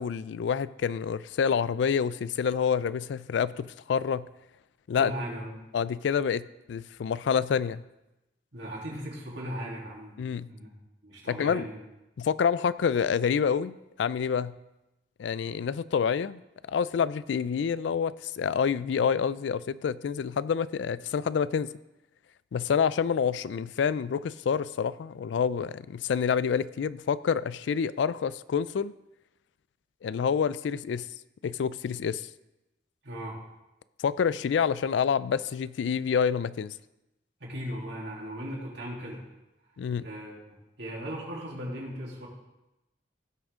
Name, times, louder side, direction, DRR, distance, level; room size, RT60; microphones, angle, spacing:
voice 1, 0.0-4.3 4.9-5.1 5.7-7.8 10.2-10.5 11.3-11.7 12.2-14.5 15.2-16.4 16.7-21.7 22.5-28.9 30.0-31.1 31.4-32.3 34.0-36.7 39.8-40.1, left 7 dB, 75° left, 18 dB, 0.3 m, -27 dB
voice 2, 4.9-5.7 8.5-10.7 11.0-11.8 33.0-33.4 37.4-39.2 40.0-42.3, equal, 70° right, -4 dB, 3.0 m, -38 dB
16.0 x 6.3 x 3.6 m, 0.97 s
head